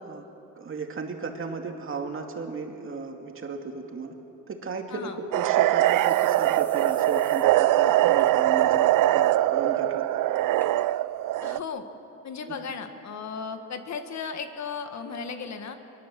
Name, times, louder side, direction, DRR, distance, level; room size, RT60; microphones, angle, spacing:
voice 1, 0.6-4.1 4.5-10.0 12.5-12.6, right 4 dB, 40° right, 3 dB, 2.4 m, -35 dB
sound 1, 4.9-5.0 5.3-5.4 5.8-7.5 7.8-7.9 8.2-8.6 9.0-9.3 10.0-10.1 10.6-10.7 11.4-11.5, left 1 dB, 5° left, 1.9 m, -49 dB
sound 2, 5.3-11.6, right 15 dB, 85° right, 0.5 m, -22 dB
voice 2, 11.4-11.8 12.2-15.8, left 5 dB, 60° left, 7 dB, 1.8 m, -35 dB
24.0 x 22.0 x 7.7 m, 3.0 s
cardioid pair, 135°, 31 cm